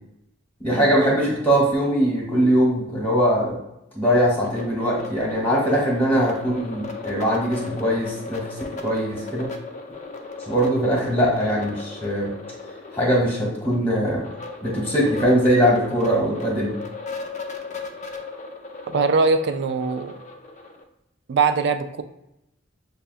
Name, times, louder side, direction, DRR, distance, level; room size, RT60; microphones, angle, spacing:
voice 1, 0.6-3.6 3.9-8.4 8.7-9.5 10.4-12.3 12.9-14.3 14.6-16.7, equal, 10° left, -3 dB, 1.0 m, -21 dB
sound 1, 4.1-20.8, left 3 dB, 35° left, 0.5 m, -37 dB
voice 2, 18.9-20.2 21.3-22.0, right 4 dB, 60° right, 9 dB, 0.3 m, -21 dB
6.4 x 2.3 x 2.4 m, 0.86 s
head